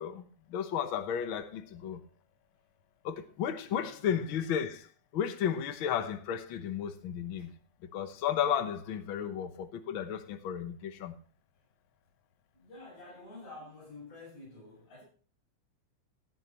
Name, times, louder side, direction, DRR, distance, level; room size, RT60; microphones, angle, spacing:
voice 1, 0.0-2.0 3.0-4.9 5.1-7.5 7.9-11.1, left 8 dB, 85° left, 1.1 m, -33 dB
voice 2, 3.7-4.2 7.4-7.5 12.6-15.0, left 2 dB, 55° left, 8.7 m, -49 dB
16.5 x 10.0 x 3.0 m
omnidirectional pair, 3.8 m